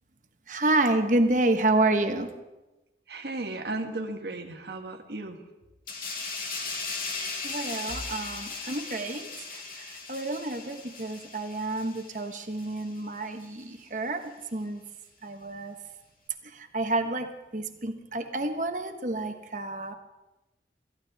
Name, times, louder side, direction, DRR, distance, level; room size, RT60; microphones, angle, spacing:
voice 1, 0.5-2.3 7.4-14.8 15.2-15.7 16.5-19.9, right 2 dB, 45° right, 6 dB, 1.2 m, -29 dB
voice 2, 3.1-5.4, right 2 dB, 70° right, 5 dB, 1.3 m, -35 dB
sound 1, 5.9-13.0 13.4-13.6, left 4 dB, 50° left, 2.3 m, -38 dB
21.5 x 14.5 x 3.5 m, 1.1 s
head